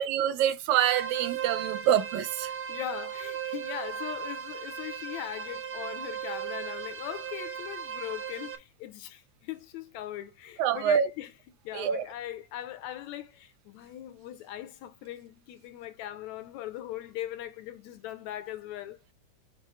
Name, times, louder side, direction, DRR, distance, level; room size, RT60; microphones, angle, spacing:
voice 1, 0.0-2.5 10.6-11.1 11.7-12.0, right 9 dB, 80° right, 1.9 m, -26 dB
sound 1, 0.7-8.5, right 8 dB, 55° right, 1.7 m, -37 dB
voice 2, 2.7-11.3 11.6-19.0, left 12 dB, 75° left, 1.9 m, -40 dB
6.6 x 5.2 x 3.1 m
omnidirectional pair, 3.6 m